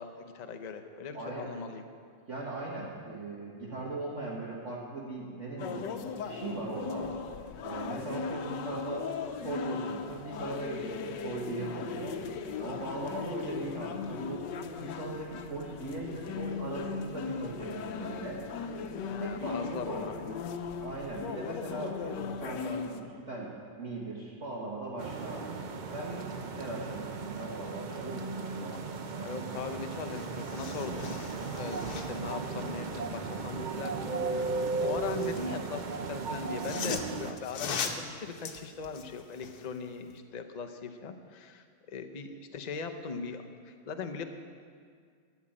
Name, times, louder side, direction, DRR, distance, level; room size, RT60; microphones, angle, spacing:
voice 1, 0.0-1.8 8.3-8.5 19.1-20.3 29.1-31.2 31.5-34.5 34.8-44.2, left 5 dB, 50° left, 6 dB, 0.5 m, -40 dB
voice 2, 1.1-1.5 2.3-7.1 7.6-9.0 9.4-12.1 12.6-18.4 19.2-20.0 20.8-23.5 23.8-25.5 25.9-26.2 26.5-28.8, right 2 dB, 45° right, -5 dB, 1.7 m, -39 dB
sound 1, 5.6-23.0, left 6 dB, 85° left, 1.4 m, -38 dB
sound 2, 25.0-37.3, right 4 dB, 85° right, 0.4 m, -36 dB
sound 3, 29.7-29.8 30.1-32.3 34.5-35.5 36.3-39.7 40.1-40.2, left 6 dB, 65° left, 1.4 m, -39 dB
12.5 x 7.3 x 8.7 m, 2.1 s
omnidirectional pair, 1.8 m